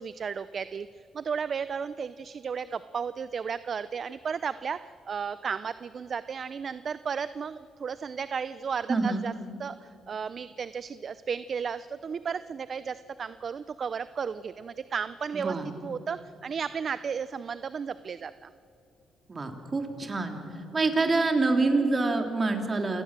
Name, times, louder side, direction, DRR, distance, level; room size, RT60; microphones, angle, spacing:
voice 1, 0.0-9.3 9.6-15.6 15.8-18.5, right 6 dB, 50° right, 14 dB, 0.5 m, -34 dB
voice 2, 8.9-9.2 15.3-15.7 19.3-20.4 20.7-23.0, right 3 dB, 30° right, 4 dB, 3.3 m, -26 dB
28.0 x 18.0 x 7.5 m, 2.7 s
cardioid pair, 90°, 0 cm